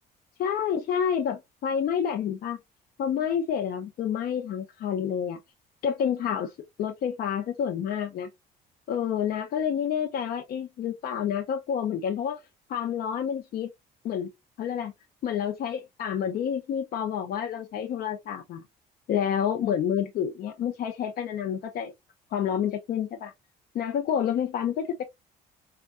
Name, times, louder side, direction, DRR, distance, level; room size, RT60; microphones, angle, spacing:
voice 1, 0.4-2.6 3.0-5.4 5.8-6.5 6.8-8.3 8.9-12.4 12.7-13.7 14.0-14.3 14.6-14.9 15.2-18.6 19.1-21.9 22.3-23.3 23.7-25.0, left 8 dB, 60° left, 0.6 m, -29 dB
4.3 x 2.2 x 2.4 m
cardioid pair, 110°, 17 cm